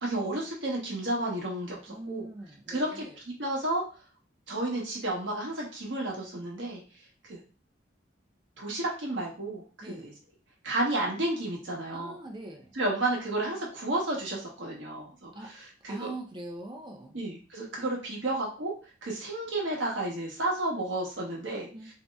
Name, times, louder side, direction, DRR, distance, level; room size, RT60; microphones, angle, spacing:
voice 1, 0.0-2.3 2.7-3.8 4.5-6.8 7.3-7.4 8.6-10.1 10.6-12.2 12.8-15.3 15.8-16.1 17.1-18.7 19.0-21.7, right 1 dB, 70° right, -2 dB, 1.0 m, -32 dB
voice 2, 1.9-3.2 9.8-10.1 11.9-12.7 15.3-15.5 15.9-17.2 21.7-21.9, right 2 dB, 25° right, 2 dB, 0.5 m, -42 dB
2.7 x 2.0 x 3.4 m, 0.36 s
head